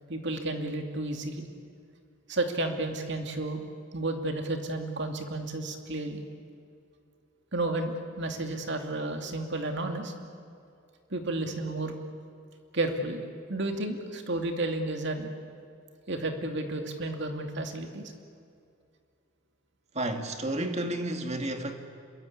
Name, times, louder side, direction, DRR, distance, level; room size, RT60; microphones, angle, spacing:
voice 1, 0.1-1.5 2.3-6.2 7.5-10.1 11.1-11.9 12.7-13.2 13.5-15.3 16.1-18.1, right 2 dB, 60° right, 5 dB, 2.6 m, -32 dB
voice 2, 19.9-21.8, right 1 dB, 35° right, 5 dB, 2.2 m, -31 dB
27.0 x 23.0 x 8.6 m, 2.4 s
head